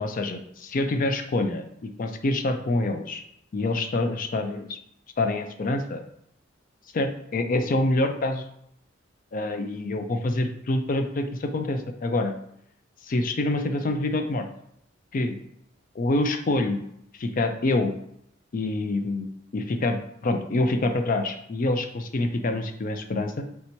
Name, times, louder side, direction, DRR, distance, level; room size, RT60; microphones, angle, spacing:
voice 1, 0.0-3.2 3.5-4.8 5.2-6.0 6.9-8.4 9.3-12.3 13.0-14.5 15.1-15.4 16.0-16.8 17.2-17.9 18.5-19.3 19.5-23.4, left 2 dB, 45° left, 6 dB, 0.4 m, -26 dB
3.3 x 2.8 x 4.4 m, 0.73 s
head